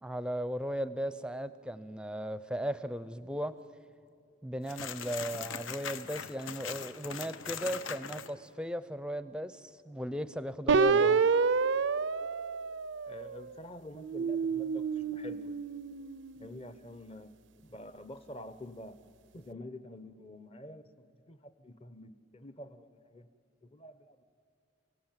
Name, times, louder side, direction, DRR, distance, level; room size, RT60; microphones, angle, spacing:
voice 1, 0.0-3.6 4.4-11.1, equal, 5° right, 14 dB, 0.6 m, -36 dB
sound 1, 4.7-8.3, left 7 dB, 80° left, 1.0 m, -40 dB
sound 2, 10.7-13.4 14.0-16.4, right 5 dB, 70° right, 0.5 m, -29 dB
voice 2, 10.9-11.2 13.1-15.6 16.4-17.3 17.6-19.0 19.3-20.8 21.3-23.3 23.6-24.2, left 1 dB, 30° left, 12 dB, 0.8 m, -47 dB
29.5 x 16.5 x 9.0 m, 2.5 s
head